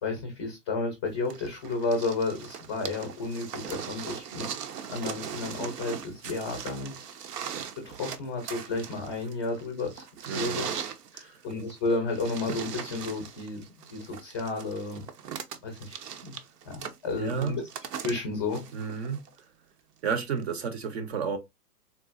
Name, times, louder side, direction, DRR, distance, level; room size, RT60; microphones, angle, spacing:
voice 1, 0.0-4.5 4.9-7.1 7.8-10.7 11.1-15.0 15.6-16.3 16.7-17.6 18.0-18.6, left 3 dB, 20° left, 0.5 m, -32 dB
sound 1, 1.3-19.4 20.4-20.5, right 8 dB, 80° right, 0.7 m, -39 dB
voice 2, 10.3-10.7 11.2-11.4 17.2-17.6 18.7-19.5 20.0-21.4, right 6 dB, 45° right, 0.6 m, -32 dB
3.8 x 2.4 x 2.4 m
hypercardioid pair, 145°, 47 cm